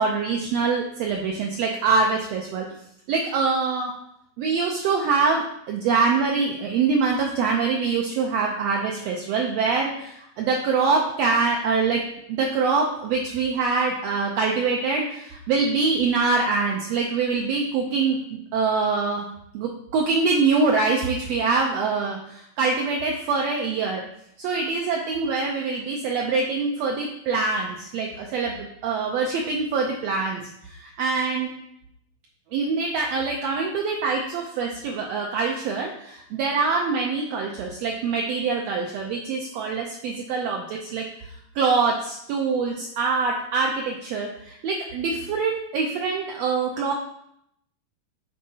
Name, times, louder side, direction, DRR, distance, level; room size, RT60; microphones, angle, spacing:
voice 1, 0.0-2.6 3.1-3.9 4.4-19.2 19.5-24.0 24.4-30.4 30.8-31.5 32.5-41.1 41.5-46.9, right 4 dB, 80° right, 0 dB, 1.5 m, -24 dB
8.9 x 3.8 x 2.8 m, 0.74 s
omnidirectional pair, 3.5 m